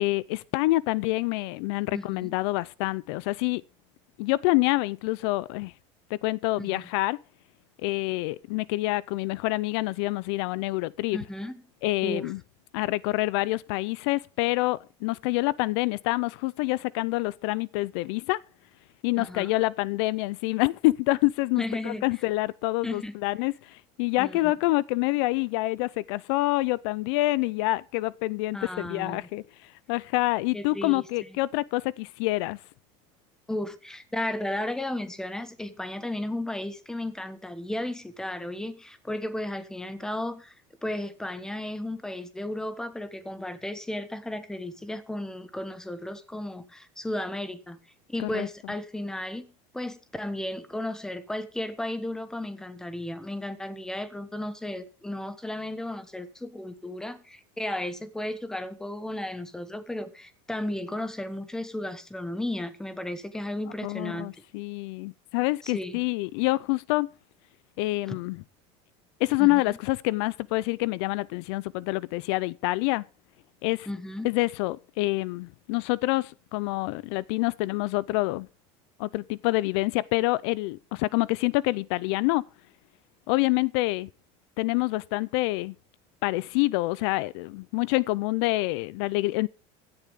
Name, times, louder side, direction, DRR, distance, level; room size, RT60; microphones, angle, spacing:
voice 1, 0.0-3.6 4.2-5.7 6.1-7.2 7.8-11.2 11.8-12.4 12.7-18.4 19.0-32.6 48.2-48.5 63.8-67.1 67.8-68.4 69.2-73.0 73.6-73.9 74.2-78.5 79.0-82.4 83.3-84.1 84.6-85.7 86.2-89.5, left 20 dB, 65° left, 0.5 m, -27 dB
voice 2, 1.9-2.3 6.6-6.8 11.1-11.6 12.0-12.3 19.2-19.5 21.6-22.0 22.8-23.1 24.2-24.5 28.5-29.3 30.5-31.0 33.5-40.5 40.8-47.8 48.1-49.4 49.7-64.3 65.6-66.0 68.1-68.2 69.4-69.8 73.9-74.3, left 1 dB, 5° left, 1.2 m, -34 dB
16.0 x 11.5 x 3.6 m
cardioid pair, 165°, 15 cm